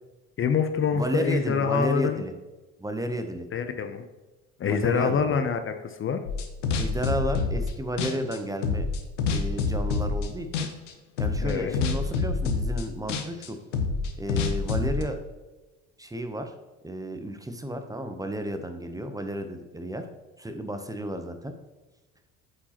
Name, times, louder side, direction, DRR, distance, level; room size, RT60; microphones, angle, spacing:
voice 1, 0.4-2.2 3.5-4.0 4.6-6.2 11.4-11.8, left 6 dB, 35° left, 8 dB, 0.6 m, -26 dB
voice 2, 0.9-2.3 2.8-3.5 4.6-5.4 6.7-8.9 9.3-10.7 11.2-13.6 14.2-15.2 16.0-16.5 16.8-20.1 20.4-21.5, equal, 10° right, 7 dB, 0.7 m, -32 dB
sound 1, 6.3-7.7 8.0-10.3 10.5-10.9 11.2-15.0, left 4 dB, 90° left, 0.8 m, -27 dB
8.4 x 4.9 x 2.9 m, 1.2 s
hypercardioid pair, 70°, 35 cm